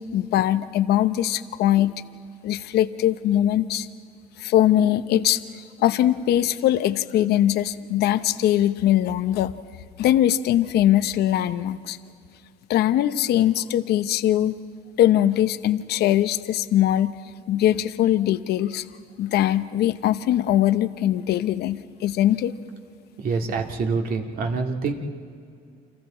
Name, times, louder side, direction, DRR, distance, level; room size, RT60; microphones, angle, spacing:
voice 1, 0.0-1.9 2.4-3.9 4.4-9.6 10.0-12.0 12.7-14.5 15.0-17.1 17.5-18.8 19.2-22.5, left 12 dB, 75° left, 12 dB, 0.8 m, -21 dB
voice 2, 23.2-24.9, right 4 dB, 60° right, 2 dB, 2.4 m, -26 dB
29.5 x 26.5 x 4.4 m, 2.3 s
cardioid pair, 110°, 17 cm